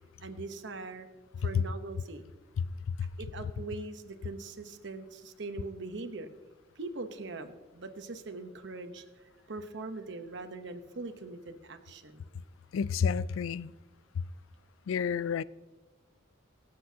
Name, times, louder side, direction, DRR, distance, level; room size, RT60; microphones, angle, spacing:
voice 1, 0.2-1.1 1.4-2.2 3.2-6.3 6.8-12.2, right 3 dB, 60° right, 0.9 m, -42 dB
voice 2, 12.7-13.7 14.9-15.4, left 6 dB, 80° left, 0.3 m, -29 dB
23.5 x 7.8 x 2.8 m
head